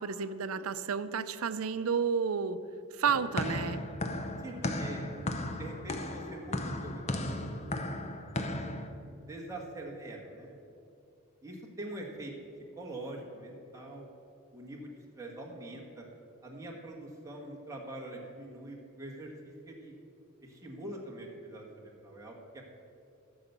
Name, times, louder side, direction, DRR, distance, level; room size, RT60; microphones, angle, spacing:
voice 1, 0.0-2.6 3.0-3.8, right 6 dB, 75° right, 13 dB, 0.5 m, -31 dB
sound 1, 3.0-8.9, left 1 dB, 30° left, 0.7 m, -35 dB
voice 2, 4.4-7.7 8.0-8.7 9.3-10.5 11.4-12.3 12.7-14.1 14.5-16.0 16.4-19.9 20.4-22.6, right 1 dB, 15° right, -2 dB, 1.4 m, -44 dB
12.5 x 7.1 x 6.7 m, 2.6 s
head